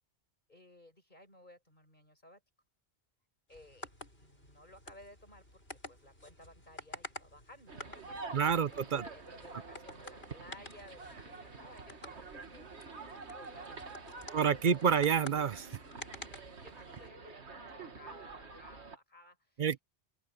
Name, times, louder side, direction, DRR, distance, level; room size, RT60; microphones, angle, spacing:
voice 1, 0.5-2.4 3.5-3.9 4.2-12.7 13.3-14.9 15.5-19.6, left 1 dB, 45° left, 7.5 m, -57 dB
sound 1, 3.5-17.1, left 2 dB, 65° left, 8.1 m, -51 dB
sound 2, 7.7-19.0, right 4 dB, 80° right, 2.2 m, -48 dB
voice 2, 8.3-9.1 14.3-15.6 19.6-19.8, right 7 dB, 50° right, 0.8 m, -28 dB
open air
omnidirectional pair, 1.1 m